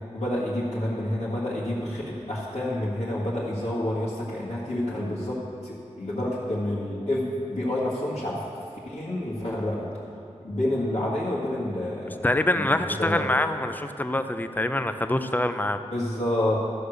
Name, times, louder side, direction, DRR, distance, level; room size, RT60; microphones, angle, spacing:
voice 1, 0.1-5.4 5.6-7.2 7.5-8.4 8.8-9.9 10.4-12.2 12.5-13.2 15.9-16.6, left 1 dB, 65° left, -9 dB, 1.7 m, -28 dB
voice 2, 12.2-15.8, left 1 dB, 15° left, 9 dB, 0.5 m, -25 dB
13.5 x 4.9 x 6.4 m, 2.6 s
wide cardioid pair, 70°, 12 cm